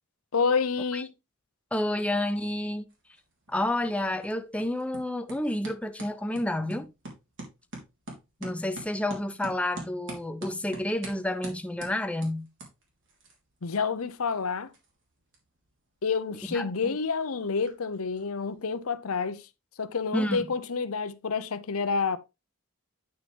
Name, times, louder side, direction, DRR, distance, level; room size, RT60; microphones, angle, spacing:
voice 1, 0.3-1.1 13.6-14.7 16.0-19.5 19.8-22.2, left 5 dB, 80° left, 0.8 m, -28 dB
voice 2, 1.7-2.9 3.5-6.9 8.4-12.5 16.5-17.0 20.1-20.5, left 1 dB, 5° left, 0.4 m, -30 dB
sound 1, 2.9-18.8, right 2 dB, 60° right, 3.4 m, -47 dB
9.2 x 6.2 x 3.4 m
head